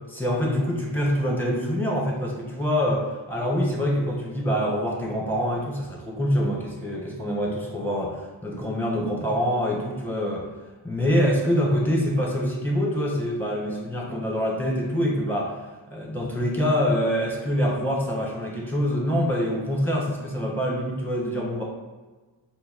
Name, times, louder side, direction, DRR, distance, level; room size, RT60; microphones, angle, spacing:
voice 1, 0.1-10.5 10.8-15.5 15.9-21.6, equal, 5° left, -3 dB, 1.3 m, -25 dB
4.9 x 2.2 x 4.6 m, 1.2 s
cardioid pair, 40°, 45 cm